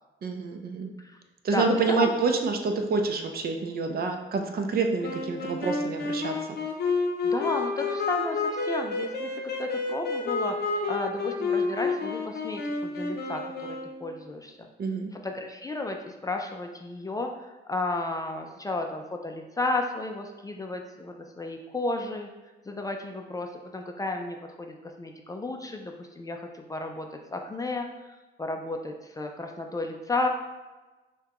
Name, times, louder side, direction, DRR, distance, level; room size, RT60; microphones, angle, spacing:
voice 1, 0.2-0.9 1.4-6.4 14.8-15.1, right 4 dB, 50° right, 4 dB, 0.5 m, -27 dB
voice 2, 1.5-2.1 7.2-9.3 9.6-14.7 15.1-22.3 22.7-28.1 28.4-30.3, left 2 dB, 15° left, 3 dB, 0.4 m, -33 dB
sound 1, 5.0-14.2, left 4 dB, 55° left, 0.7 m, -30 dB
5.7 x 2.2 x 2.9 m, 1.2 s
cardioid pair, 90°, 20 cm